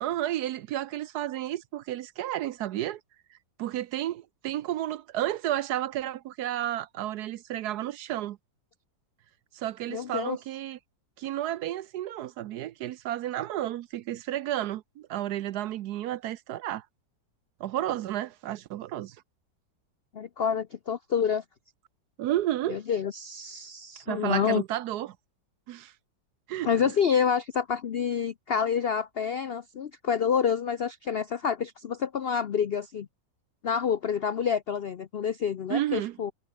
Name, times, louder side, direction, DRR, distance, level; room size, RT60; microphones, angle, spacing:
voice 1, 0.0-3.0 3.6-8.4 9.5-10.8 11.2-16.8 17.6-19.2 22.2-22.8 24.1-25.2 25.7-25.9 26.5-26.9 35.7-36.2, right 13 dB, 70° right, 1.1 m, -32 dB
voice 2, 9.9-10.4 20.1-21.4 22.7-24.6 26.6-33.1 33.6-36.3, left 7 dB, 80° left, 0.5 m, -28 dB
omnidirectional pair, 2.0 m